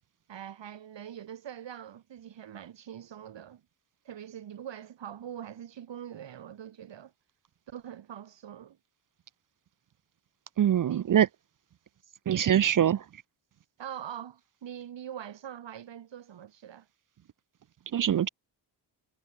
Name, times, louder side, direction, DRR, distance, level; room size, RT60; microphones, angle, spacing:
voice 1, 0.3-3.6 4.0-7.1 7.7-8.8 10.8-11.0 13.8-16.9, right 10 dB, 75° right, 7.7 m, -43 dB
voice 2, 10.6-11.3 12.3-13.0 17.9-18.3, right 10 dB, 45° right, 0.6 m, -23 dB
wide cardioid pair, 155°, 44 cm